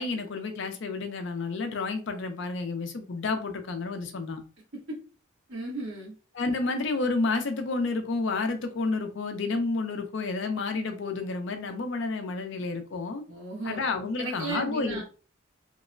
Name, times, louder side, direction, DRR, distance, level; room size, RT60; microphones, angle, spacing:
voice 1, 0.0-4.4 6.3-13.2 13.6-15.0, left 3 dB, 60° left, 6 dB, 0.4 m, -30 dB
voice 2, 5.5-6.1 13.3-13.8 14.2-15.0, right 2 dB, 65° right, -2 dB, 1.1 m, -34 dB
2.9 x 2.0 x 2.4 m, 0.35 s
head